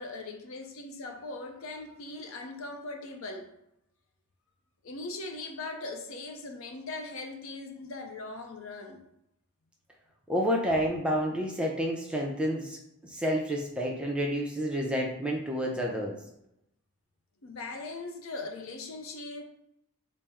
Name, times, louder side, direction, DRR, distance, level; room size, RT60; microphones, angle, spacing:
voice 1, 0.0-3.5 4.8-9.0 17.4-19.4, left 3 dB, 65° left, 0.5 m, -40 dB
voice 2, 10.3-12.8 13.1-16.2, equal, 5° right, 0.4 m, -29 dB
4.2 x 2.0 x 3.4 m
head